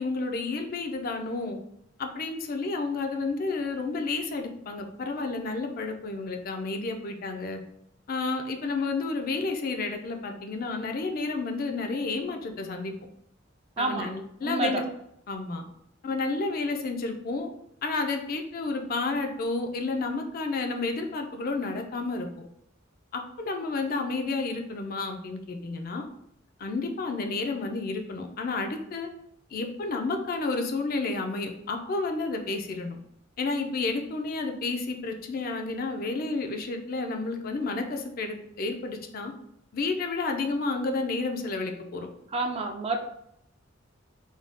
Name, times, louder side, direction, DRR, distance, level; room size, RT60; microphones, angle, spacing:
voice 1, 0.0-1.6 2.0-7.6 8.1-12.9 13.8-14.8 15.3-15.6 16.0-17.5 17.8-22.3 23.1-26.0 26.6-29.1 29.5-33.0 33.4-39.3 39.7-42.1, left 3 dB, 50° left, 5 dB, 0.4 m, -31 dB
voice 2, 13.8-14.1 14.4-14.9 42.3-43.0, right 2 dB, 30° right, 4 dB, 0.3 m, -28 dB
2.6 x 2.3 x 3.4 m, 0.75 s
head